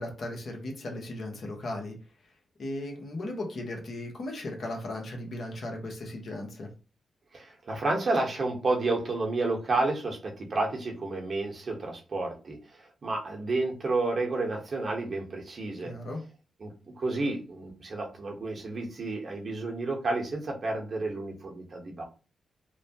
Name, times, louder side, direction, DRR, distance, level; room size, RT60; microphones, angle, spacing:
voice 1, 0.0-1.9 2.6-6.7 15.8-16.2, left 1 dB, 65° left, 1 dB, 0.9 m, -36 dB
voice 2, 7.3-15.9 16.6-22.0, right 2 dB, 55° right, 1 dB, 0.9 m, -31 dB
2.9 x 2.1 x 2.7 m, 0.33 s
supercardioid pair, 50°, 0 cm